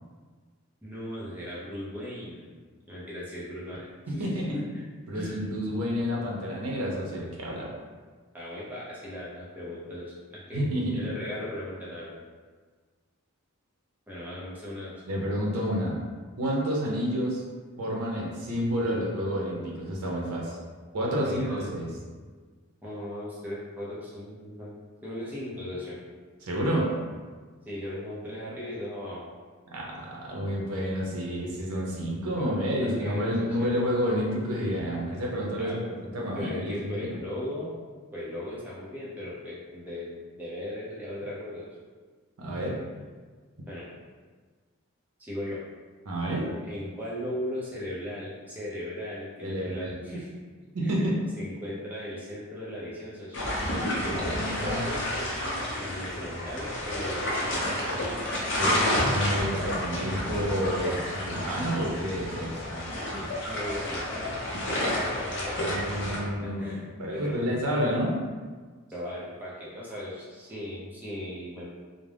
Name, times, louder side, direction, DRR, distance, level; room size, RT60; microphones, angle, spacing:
voice 1, 0.8-2.6 2.9-4.6 5.1-5.4 8.3-12.2 14.1-14.9 21.1-22.2 22.8-24.7 25.0-26.0 27.7-29.3 32.4-32.5 32.8-33.7 35.6-35.8 36.4-37.8 38.1-41.7 42.5-42.8 43.7-43.9 45.2-45.6 46.6-50.3 50.8-51.1 51.4-53.5 54.0-55.1 55.8-58.0 63.1-64.4 64.9-65.8 66.4-66.9 67.1-67.5 68.9-71.6, left 1 dB, 10° right, -8 dB, 0.5 m, -38 dB
voice 2, 4.1-4.6 5.1-7.7 10.5-11.0 15.1-16.0 16.4-17.4 17.8-20.6 20.9-21.9 26.4-26.9 29.7-35.8 36.1-37.2 42.4-42.7 46.0-46.6 49.4-50.0 50.7-51.2 54.3-54.9 58.3-62.8 65.6-66.7 67.0-68.2, equal, 85° right, -2 dB, 0.6 m, -29 dB
sound 1, 53.3-66.2, left 1 dB, 55° left, 0.5 m, -30 dB
2.4 x 2.0 x 3.2 m, 1.5 s
head